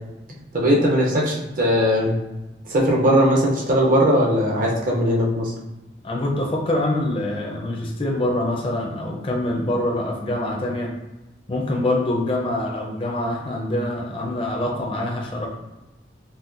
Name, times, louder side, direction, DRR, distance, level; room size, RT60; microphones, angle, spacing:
voice 1, 0.5-2.1 2.7-5.5, equal, 45° right, -2 dB, 0.6 m, -19 dB
voice 2, 6.0-10.9 11.5-15.5, left 1 dB, 30° left, 0 dB, 0.5 m, -25 dB
4.1 x 2.2 x 2.5 m, 1.0 s
head